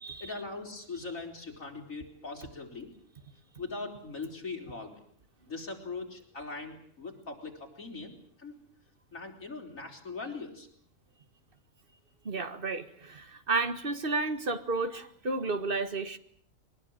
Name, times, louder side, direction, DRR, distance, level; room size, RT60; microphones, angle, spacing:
voice 1, 0.2-2.9 3.6-5.0 5.4-8.5 9.1-10.7, left 3 dB, 70° left, 2 dB, 4.8 m, -41 dB
voice 2, 12.3-16.2, right 3 dB, 40° right, 10 dB, 1.8 m, -32 dB
22.5 x 20.5 x 8.8 m, 0.63 s
omnidirectional pair, 1.4 m